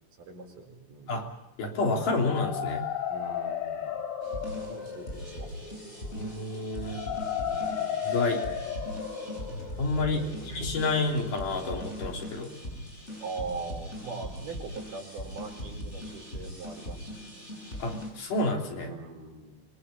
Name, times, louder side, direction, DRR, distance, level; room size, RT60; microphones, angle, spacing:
voice 1, 0.2-1.3 3.1-4.0 4.5-5.9 7.5-8.0 10.1-10.9 13.2-17.4 17.9-18.0 18.8-19.5, right 4 dB, 90° right, 2 dB, 6.0 m, -42 dB
voice 2, 1.6-2.9 6.1-7.1 8.0-8.4 9.8-12.5 17.8-18.9, left 3 dB, 80° left, 1 dB, 4.8 m, -29 dB
sound 1, 2.0-11.9, left 8 dB, 55° left, 4.0 m, -35 dB
sound 2, 4.2-18.1, left 1 dB, 20° left, 7.8 m, -40 dB
25.0 x 22.5 x 7.0 m, 0.93 s
omnidirectional pair, 3.6 m